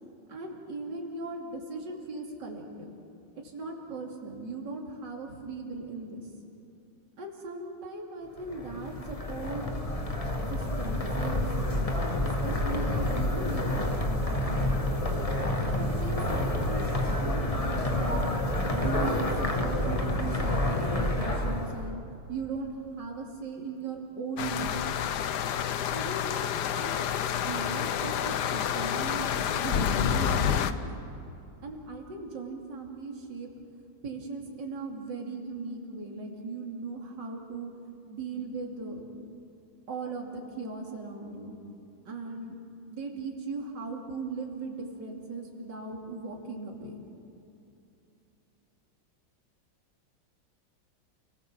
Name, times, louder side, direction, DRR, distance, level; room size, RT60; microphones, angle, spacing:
voice 1, 0.3-2.9 3.4-6.3 7.2-9.8 10.5-11.7 12.4-14.6 15.8-18.2 18.7-22.0 22.3-24.9 25.9-26.4 26.7-31.2 31.6-33.5 34.0-37.7 38.1-39.0 39.9-41.5 42.0-42.6 42.9-47.0, right 4 dB, 60° right, 0 dB, 3.2 m, -38 dB
sound 1, 8.4-21.9, left 1 dB, 20° left, 1.4 m, -29 dB
sound 2, 24.4-30.7, left 9 dB, 65° left, 1.2 m, -29 dB
29.5 x 19.0 x 7.3 m, 2.8 s
omnidirectional pair, 2.2 m